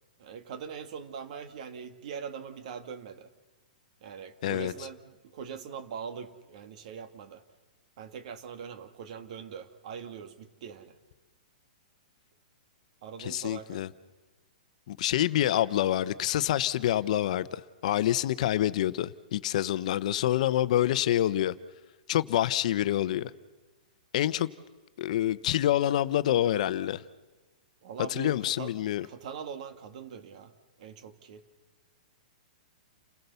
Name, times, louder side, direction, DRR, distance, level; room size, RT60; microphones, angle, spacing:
voice 1, 0.2-3.3 4.0-7.4 8.0-11.0 13.0-13.8 27.8-28.7 29.0-30.5 30.8-31.5, right 7 dB, 55° right, 1.9 m, -42 dB
voice 2, 4.4-4.7 13.2-13.9 14.9-21.5 22.1-23.3 24.1-24.5 25.0-27.0 28.1-29.1, left 12 dB, 55° left, 0.8 m, -27 dB
29.5 x 16.0 x 6.9 m
hypercardioid pair, 155°, 5 cm